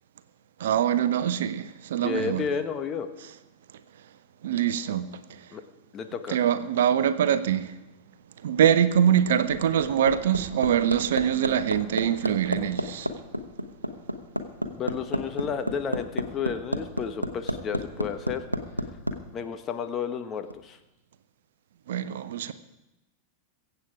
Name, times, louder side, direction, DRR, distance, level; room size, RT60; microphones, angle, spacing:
voice 1, 0.6-2.4 4.4-5.4 6.3-7.8 8.4-13.1 21.9-22.5, right 9 dB, 60° right, 0.7 m, -24 dB
voice 2, 2.0-3.1 5.5-5.6 5.9-6.5 14.7-18.4 19.3-20.8, left 6 dB, 25° left, 1.2 m, -32 dB
Hammer, 9.3-19.2 20.5-20.6, equal, 85° right, 1.0 m, -29 dB
22.5 x 8.2 x 4.9 m
figure-of-eight pair, 90°, 0 cm